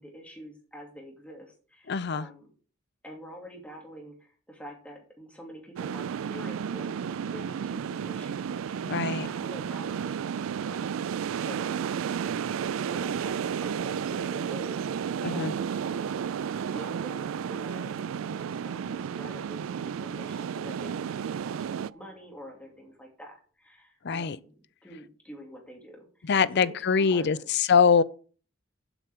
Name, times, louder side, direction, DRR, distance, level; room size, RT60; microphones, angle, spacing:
voice 1, 0.0-2.5 3.0-11.9 12.7-16.1 16.7-24.5 24.8-27.5, equal, 5° left, 2.6 m, -47 dB
voice 2, 1.9-2.3 8.9-9.3 15.2-15.5 24.0-24.4 26.3-28.0, left 6 dB, 55° left, 0.5 m, -23 dB
sound 1, 5.8-21.9, right 7 dB, 85° right, 0.3 m, -32 dB
Bowed string instrument, 18.1-23.1, right 2 dB, 30° right, 3.3 m, -57 dB
8.0 x 5.8 x 7.7 m
head